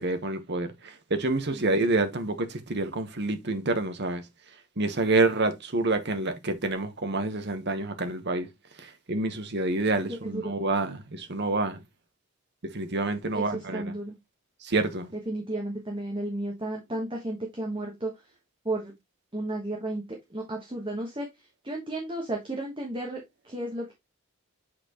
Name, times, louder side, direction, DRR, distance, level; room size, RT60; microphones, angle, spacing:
voice 1, 0.0-4.2 4.8-8.5 8.8-11.8 12.7-13.8 14.6-15.1, right 2 dB, 50° right, 1.1 m, -28 dB
voice 2, 10.1-10.6 13.3-14.2 15.3-18.1 18.6-18.9 19.3-23.9, right 1 dB, 20° right, 1.2 m, -33 dB
7.7 x 4.3 x 3.0 m
head